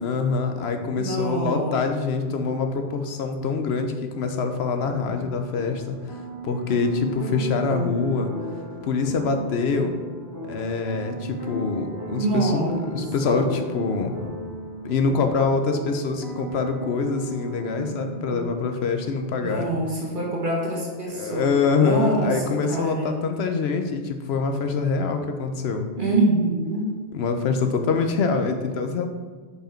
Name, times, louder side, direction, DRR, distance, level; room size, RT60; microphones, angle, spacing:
voice 1, 0.0-6.0 6.4-8.3 8.8-9.9 10.5-14.1 14.8-19.7 21.1-25.9 27.1-29.1, left 4 dB, 70° left, 6 dB, 0.9 m, -25 dB
voice 2, 1.0-1.8 2.2-2.3 12.1-13.0 13.2-13.4 19.4-21.5 21.8-23.2 26.0-26.9, right 2 dB, 50° right, -3 dB, 1.5 m, -25 dB
sound 1, 4.8-18.5, right 1 dB, 20° left, 1.2 m, -35 dB
5.2 x 4.8 x 4.4 m, 1.5 s
omnidirectional pair, 1.1 m